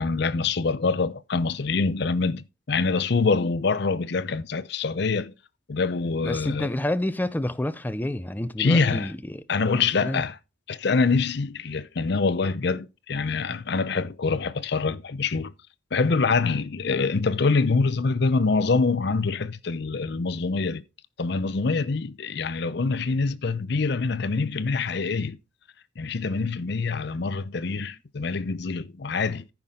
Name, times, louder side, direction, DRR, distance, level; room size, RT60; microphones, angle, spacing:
voice 1, 0.0-5.3 5.7-6.7 8.6-9.1 9.5-10.4 10.7-15.5 15.9-20.8 21.2-25.4 26.0-29.4, left 4 dB, 55° left, 0.6 m, -25 dB
voice 2, 6.2-9.4 10.0-10.2, left 1 dB, 10° left, 0.5 m, -28 dB
14.0 x 5.9 x 3.7 m
head